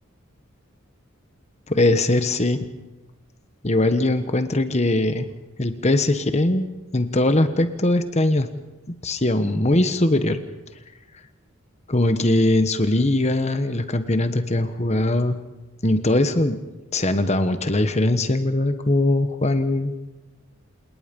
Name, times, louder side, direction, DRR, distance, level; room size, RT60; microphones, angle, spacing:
voice 1, 1.7-2.6 3.6-5.3 5.6-6.7 6.9-8.5 9.0-10.4 11.9-15.4 15.8-16.6 16.9-19.9, left 1 dB, 30° left, 9 dB, 1.3 m, -21 dB
28.5 x 19.0 x 5.4 m, 1.1 s
head